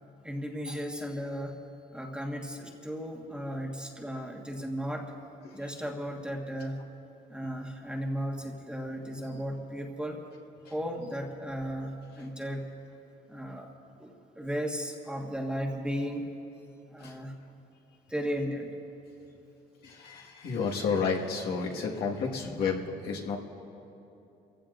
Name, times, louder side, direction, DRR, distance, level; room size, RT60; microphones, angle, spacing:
voice 1, 0.2-1.6 1.9-5.1 5.5-6.8 7.3-10.2 10.7-12.6 13.3-13.7 14.0-16.3 16.9-17.3 18.1-18.7, equal, 5° right, 1 dB, 1.5 m, -35 dB
voice 2, 19.8-23.4, left 5 dB, 70° left, -1 dB, 1.7 m, -31 dB
29.5 x 15.5 x 2.6 m, 2.9 s
cardioid pair, 110°, 17 cm